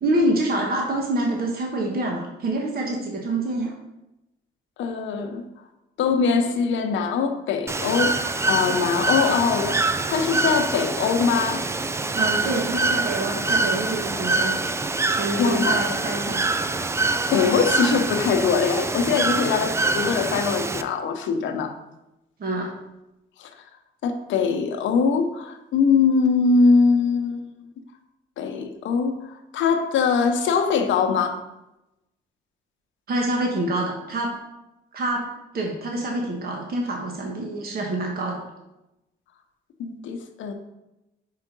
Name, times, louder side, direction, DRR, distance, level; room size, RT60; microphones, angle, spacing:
voice 1, 0.0-3.7 12.1-14.6 15.1-16.4 22.4-22.7 33.1-34.3 34.9-35.3 35.5-38.4, right 1 dB, 50° right, 0 dB, 1.3 m, -26 dB
voice 2, 4.8-5.4 6.0-11.6 15.4-15.8 17.3-21.8 23.4-23.5 24.0-27.5 28.4-31.4 39.8-40.5, left 5 dB, 75° left, 5 dB, 0.8 m, -22 dB
Bird / Water, 7.7-20.8, right 3 dB, 15° right, 0.3 m, -25 dB
4.9 x 4.5 x 5.3 m, 0.93 s
cardioid pair, 90°, 20 cm